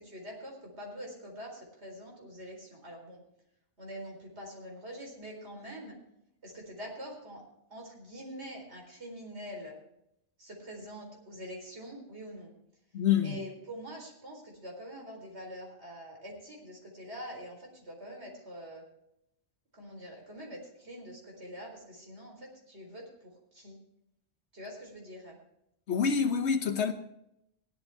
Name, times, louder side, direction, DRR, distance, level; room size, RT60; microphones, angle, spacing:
voice 1, 0.0-3.2 3.8-6.0 6.4-7.4 7.7-9.8 10.4-12.5 13.2-18.8 19.7-23.8 24.5-25.4, equal, 90° right, 4.5 m, -45 dB
voice 2, 12.9-13.4 25.9-26.9, left 7 dB, 85° left, 1.3 m, -27 dB
17.0 x 12.0 x 3.5 m
omnidirectional pair, 1.1 m